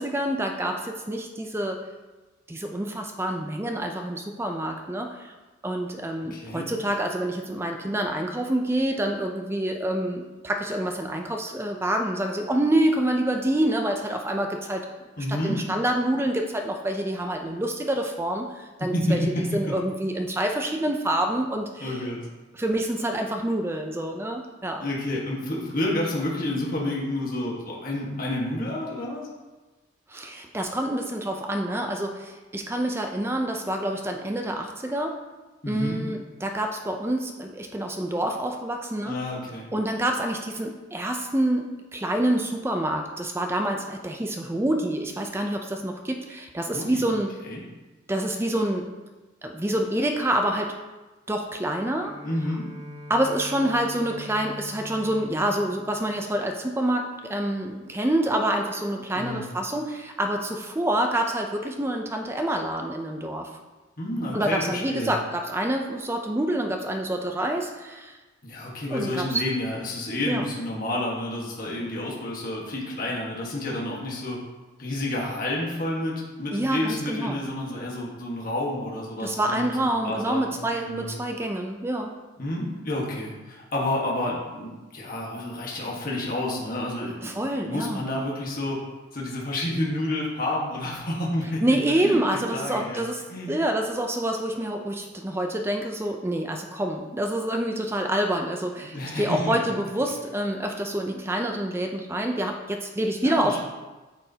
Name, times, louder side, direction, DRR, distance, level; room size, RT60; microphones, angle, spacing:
voice 1, 0.0-1.8 2.5-5.3 5.6-14.9 15.2-19.2 19.5-22.0 22.5-24.9 30.1-35.2 35.7-39.2 39.7-47.4 48.1-48.9 49.4-50.7 51.3-52.1 53.1-63.5 64.3-68.2 68.9-69.4 70.3-70.5 76.5-77.4 79.2-82.1 87.2-88.0 91.6-103.6, right 1 dB, 10° right, 3 dB, 0.4 m, -27 dB
voice 2, 6.3-6.7 15.2-15.6 18.8-19.1 21.8-22.2 24.8-29.3 35.6-36.0 39.0-39.7 46.7-47.1 47.5-47.6 52.2-52.7 59.1-59.4 64.0-65.1 68.4-74.4 74.8-81.1 82.4-88.8 89.1-92.2 92.5-93.0 93.3-93.5 98.8-99.5 103.2-103.6, left 1 dB, 45° left, -3 dB, 1.4 m, -30 dB
Bowed string instrument, 52.0-57.2, left 1 dB, 35° right, 2.5 m, -43 dB
8.8 x 6.4 x 2.8 m, 1.2 s
head